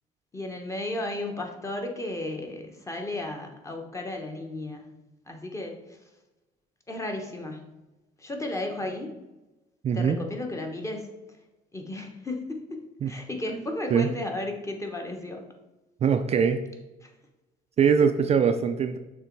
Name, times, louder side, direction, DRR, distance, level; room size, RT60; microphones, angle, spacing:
voice 1, 0.3-5.0 5.3-6.0 6.9-7.8 8.2-9.1 9.9-11.1 11.7-15.4 17.0-17.1, left 1 dB, 15° left, 2 dB, 1.1 m, -34 dB
voice 2, 9.8-10.2 13.0-13.1 13.9-14.1 16.0-16.6 17.8-19.0, right 6 dB, 40° right, 7 dB, 0.4 m, -22 dB
6.6 x 3.1 x 4.6 m, 1.0 s
cardioid pair, 110°, 17 cm